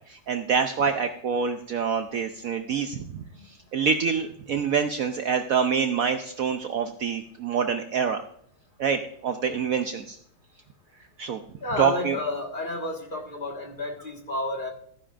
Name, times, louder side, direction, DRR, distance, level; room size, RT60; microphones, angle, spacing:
voice 1, 0.1-8.2 8.8-10.2 11.2-11.4 11.8-12.2, right 6 dB, 85° right, 7 dB, 0.7 m, -26 dB
voice 2, 11.6-14.7, left 2 dB, 25° left, 1 dB, 1.6 m, -31 dB
14.5 x 9.9 x 2.5 m, 0.64 s
omnidirectional pair, 2.3 m